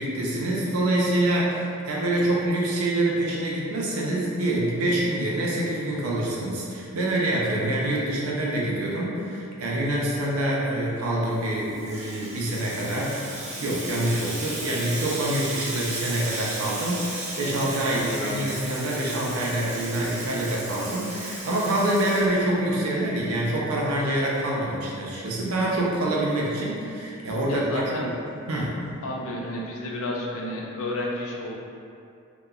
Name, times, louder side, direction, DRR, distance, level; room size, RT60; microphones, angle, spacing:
voice 1, 0.0-13.3 13.6-28.1 28.5-28.8, right 1 dB, 80° right, -4 dB, 0.5 m, -26 dB
Water tap faucet / Sink (filling or washing), 11.4-22.8, right 2 dB, 35° right, 0.5 m, -35 dB
voice 2, 17.9-18.5 27.4-28.1 29.0-31.5, left 1 dB, 70° left, -2 dB, 0.4 m, -31 dB
3.0 x 2.1 x 2.3 m, 2.6 s
head